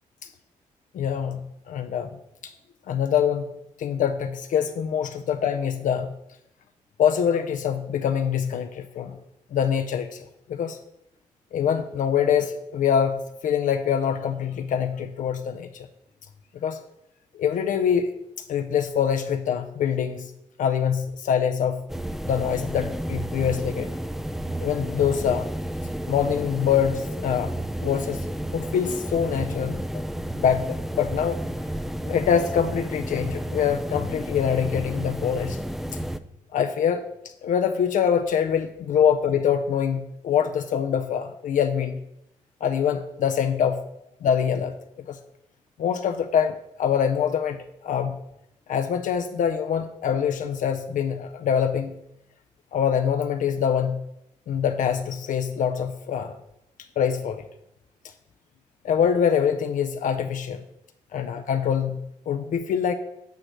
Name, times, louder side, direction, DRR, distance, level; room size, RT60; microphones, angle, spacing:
voice 1, 0.9-1.4 1.7-2.1 2.4-2.5 2.9-3.5 3.8-6.1 7.0-9.2 9.5-10.2 10.5-10.8 11.5-15.9 16.6-16.8 17.3-18.1 18.5-20.3 20.6-21.8 22.3-23.9 24.6-25.5 26.1-27.5 27.8-28.2 28.5-29.8 30.4-31.4 32.0-35.6 36.5-37.0 37.4-42.0 42.6-43.8 44.2-44.7 45.1-45.2 45.8-47.6 47.8-48.1 48.7-51.9 52.7-54.0 54.5-56.3 57.0-57.4 58.8-60.6 61.1-62.9, left 8 dB, 70° left, 7 dB, 0.5 m, -24 dB
sound 1, 21.9-36.2, right 1 dB, ahead, 0.4 m, -31 dB
9.0 x 3.1 x 6.5 m, 0.82 s
cardioid pair, 65°, 14 cm